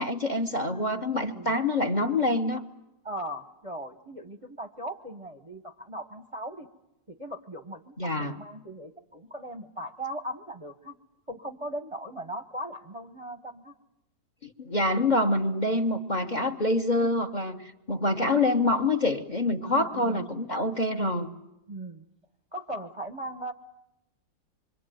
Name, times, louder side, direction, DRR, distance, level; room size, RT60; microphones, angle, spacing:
voice 1, 0.0-2.6 8.0-8.4 14.4-21.3, left 2 dB, 30° left, 8 dB, 1.3 m, -26 dB
voice 2, 0.7-1.5 3.0-6.7 7.1-11.0 11.3-13.7 19.6-20.3 20.9-21.2 21.7-22.0 22.5-23.5, right 1 dB, 20° right, 5 dB, 1.0 m, -38 dB
26.0 x 24.5 x 9.3 m, 0.89 s
omnidirectional pair, 1.9 m